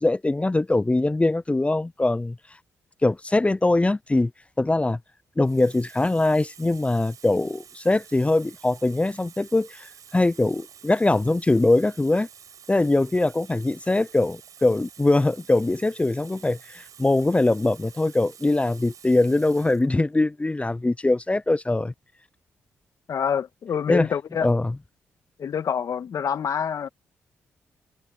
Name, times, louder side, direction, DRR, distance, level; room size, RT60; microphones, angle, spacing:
voice 1, 0.0-2.3 3.0-4.3 4.6-5.0 5.4-9.9 10.1-12.3 12.7-21.9 23.9-24.1 24.4-24.8, left 2 dB, 20° left, 0.6 m, -22 dB
Water tap faucet, 4.6-4.9 5.4-19.9 20.8-21.0, right 8 dB, 65° right, 4.8 m, -49 dB
voice 2, 23.1-24.5 25.4-26.9, left 7 dB, 60° left, 1.7 m, -26 dB
hypercardioid pair, 40°, 6 cm